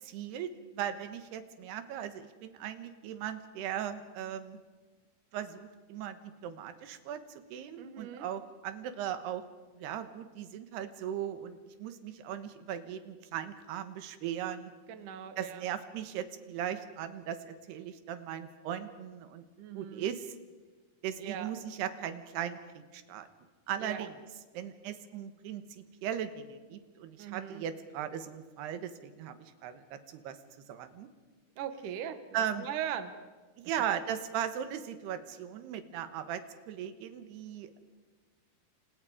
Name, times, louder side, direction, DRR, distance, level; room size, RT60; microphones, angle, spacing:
voice 1, 0.0-4.6 5.3-9.4 9.7-14.7 15.4-19.4 19.7-20.3 21.0-23.3 23.7-24.2 24.5-30.4 30.7-31.1 32.3-32.7 33.6-37.8, right 9 dB, 90° right, 9 dB, 3.3 m, -38 dB
voice 2, 7.8-8.3 14.9-15.6 19.6-20.0 21.2-21.5 23.8-24.1 27.2-27.6 31.6-33.1, right 9 dB, 60° right, 9 dB, 2.6 m, -40 dB
29.0 x 28.0 x 5.0 m, 1.3 s
omnidirectional pair, 4.6 m